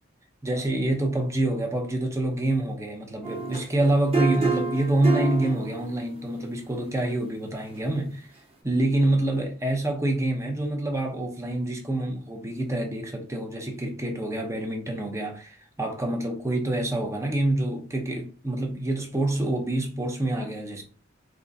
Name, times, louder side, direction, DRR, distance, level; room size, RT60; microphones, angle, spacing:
voice 1, 0.4-8.3 8.6-20.8, right 1 dB, 15° right, 0.7 m, -26 dB
sound 1, 3.2-6.2 7.7-7.8, right 4 dB, 30° right, 1.0 m, -28 dB
3.6 x 3.0 x 2.6 m
head